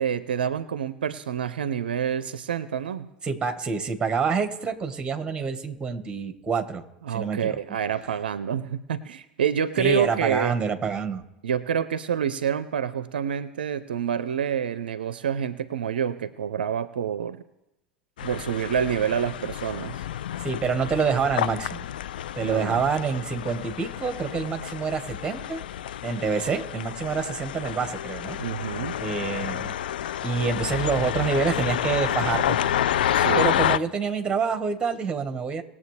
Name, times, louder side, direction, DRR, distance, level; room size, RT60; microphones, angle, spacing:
voice 1, 0.0-3.1 7.0-10.6 11.4-17.4 18.2-20.0 22.4-22.8 28.4-29.0 33.2-33.5, right 8 dB, 75° right, 15 dB, 0.5 m, -27 dB
voice 2, 3.2-6.8 7.1-7.6 9.8-11.2 20.4-21.8 22.3-25.6 26.0-28.4 29.0-29.7 30.2-32.7 33.4-35.6, right 5 dB, 20° right, 7 dB, 1.5 m, -27 dB
sound 1, 18.2-33.8, left 11 dB, 70° left, 0.4 m, -29 dB
20.0 x 7.2 x 3.3 m, 0.91 s
figure-of-eight pair, 80°, 5 cm